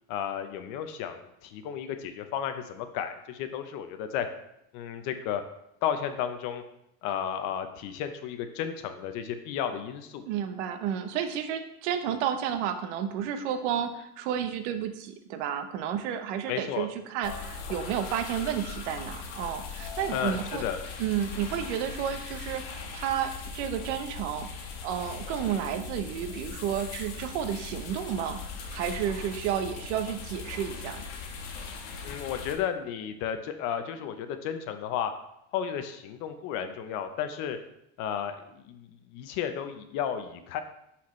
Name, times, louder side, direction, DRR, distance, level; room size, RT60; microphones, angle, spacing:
voice 1, 0.1-4.3 4.7-5.4 5.8-6.6 7.0-10.3 16.5-16.9 20.1-20.8 32.0-35.1 35.5-37.6 38.0-40.6, left 9 dB, 55° left, 8 dB, 0.8 m, -33 dB
voice 2, 10.3-20.6 21.0-31.0, right 9 dB, 80° right, 8 dB, 0.9 m, -31 dB
sound 1, 17.2-32.5, left 5 dB, 85° left, 1.5 m, -40 dB
11.0 x 4.3 x 3.2 m, 0.80 s
cardioid pair, 160°, 35 cm